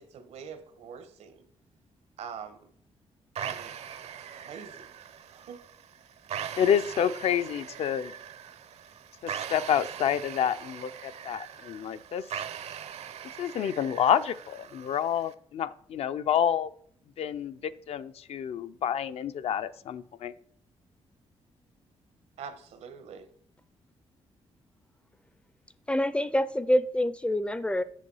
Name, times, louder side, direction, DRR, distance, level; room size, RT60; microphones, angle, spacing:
voice 1, 0.0-1.5 2.2-2.7 3.4-3.8 4.2-4.9 5.3-5.6 22.4-23.3, right 7 dB, 90° right, 1.2 m, -44 dB
sound 1, 3.4-15.3, right 8 dB, 70° right, 0.7 m, -41 dB
voice 2, 6.6-8.1 9.2-12.2 13.4-16.7 17.2-20.3, left 9 dB, 65° left, 0.5 m, -28 dB
voice 3, 25.9-27.8, equal, 10° left, 0.4 m, -26 dB
8.3 x 6.7 x 5.5 m
cardioid pair, 150°, 11 cm